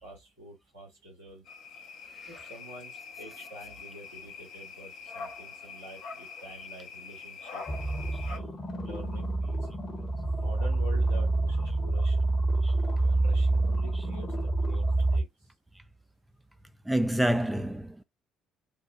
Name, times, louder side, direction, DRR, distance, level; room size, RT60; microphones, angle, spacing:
voice 1, 0.0-1.4 2.3-7.6 8.2-8.5 8.9-9.7 10.3-12.2 12.9-15.5, equal, 80° right, 1.7 m, -48 dB
sound 1, 1.4-8.4, left 5 dB, 60° left, 0.7 m, -44 dB
sound 2, 7.7-15.2, right 2 dB, 30° left, 0.9 m, -27 dB
voice 2, 16.9-18.0, right 1 dB, 5° right, 0.3 m, -27 dB
3.2 x 2.1 x 2.7 m
figure-of-eight pair, 50°, 0 cm